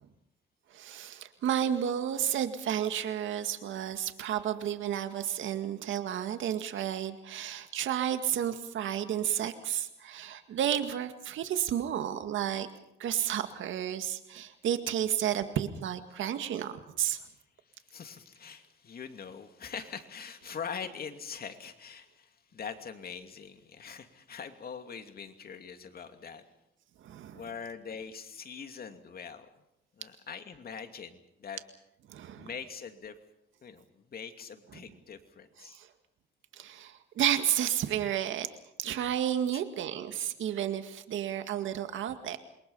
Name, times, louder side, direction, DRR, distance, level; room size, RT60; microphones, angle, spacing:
voice 1, 0.7-12.7 13.0-17.2 27.0-27.4 32.1-32.5 35.6-35.9 36.5-38.5 38.8-42.4, right 10 dB, 75° right, 8 dB, 2.1 m, -32 dB
voice 2, 17.7-26.4 27.3-29.5 30.0-31.6 32.3-33.1 33.6-35.8 39.5-39.6, left 6 dB, 50° left, 6 dB, 2.6 m, -43 dB
27.5 x 22.5 x 5.6 m, 0.82 s
cardioid pair, 90°, 20 cm